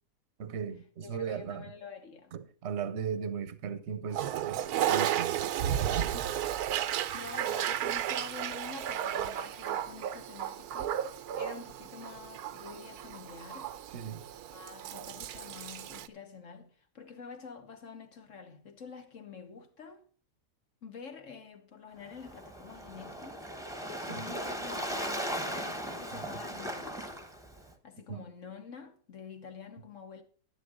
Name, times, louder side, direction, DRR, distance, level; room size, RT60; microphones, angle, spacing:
voice 1, 0.4-1.7 2.3-5.5 5.9-6.2 13.9-14.2 24.1-24.2 26.1-26.2 28.1-28.2, right 7 dB, 50° right, 1.0 m, -37 dB
voice 2, 1.0-2.3 6.1-13.7 14.5-20.0 20.8-27.0 27.8-30.2, left 5 dB, 55° left, 1.4 m, -48 dB
Toilet flush, 4.1-16.1, right 11 dB, 75° right, 1.2 m, -33 dB
Waves surf, 22.0-27.7, equal, ahead, 1.1 m, -38 dB
11.0 x 11.0 x 3.8 m
omnidirectional pair, 1.6 m